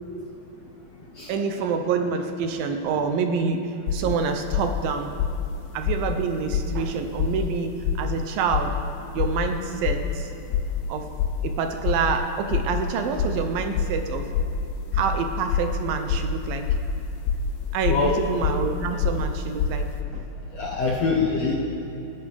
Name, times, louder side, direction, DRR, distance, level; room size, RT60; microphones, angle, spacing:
voice 1, 1.3-5.1 5.7-8.8 9.1-10.3 10.9-11.1 11.4-14.3 14.9-16.7 17.7-19.9 20.1-20.3, right 5 dB, 75° right, 6 dB, 2.4 m, -27 dB
sound 1, 3.9-4.2 4.5-4.8 5.2-5.5 5.8-6.2 6.5-6.8 7.2-7.5 7.8-8.2 8.5-8.8 9.2-9.5 9.8-10.2 10.5-10.8 11.2-11.5 11.8-12.2 12.5-12.8 13.2-13.4 13.7-14.0 14.3-14.6 14.9-15.2 15.5-15.8 16.1-16.3 16.7-16.9 17.2-17.5 17.8-18.1 18.4-18.7 19.0-19.3 19.6-19.8, left 7 dB, 80° left, 2.6 m, -25 dB
voice 2, 20.5-21.6, left 4 dB, 65° left, -1 dB, 1.7 m, -24 dB
28.5 x 10.5 x 3.5 m, 3.0 s
omnidirectional pair, 4.4 m